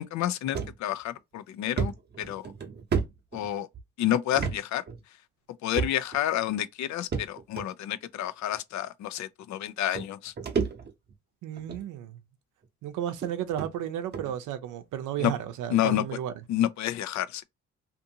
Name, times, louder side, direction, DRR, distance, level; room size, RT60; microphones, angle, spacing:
voice 1, 0.0-1.9 2.2-2.4 3.3-3.7 4.0-4.8 5.6-10.3 15.2-15.3 15.7-16.0 16.5-17.4, left 12 dB, 70° left, 0.5 m, -29 dB
sound 1, 0.5-0.7 1.2-1.3 1.8-3.8 4.3-4.6 4.9-5.0 5.7-6.2 7.1-7.6 8.5-8.6 9.6-9.7 9.9-11.1 11.6-11.8 12.6-12.7 13.2-13.3 13.6-13.7 14.1-14.3, right 6 dB, 35° right, 0.7 m, -31 dB
voice 2, 11.4-12.2 12.8-16.3, right 10 dB, 85° right, 0.6 m, -33 dB
2.6 x 2.5 x 2.7 m
cardioid pair, 90°, 30 cm